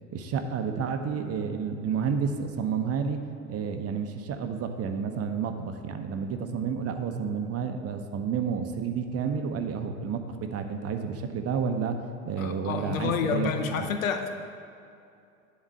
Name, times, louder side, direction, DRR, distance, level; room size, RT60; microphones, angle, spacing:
voice 1, 0.1-3.2 3.5-12.0 12.2-13.9, right 6 dB, 35° right, 6 dB, 0.9 m, -30 dB
voice 2, 12.4-14.3, left 7 dB, 75° left, 6 dB, 0.9 m, -29 dB
11.0 x 4.1 x 7.7 m, 2.5 s
hypercardioid pair, 75°, 41 cm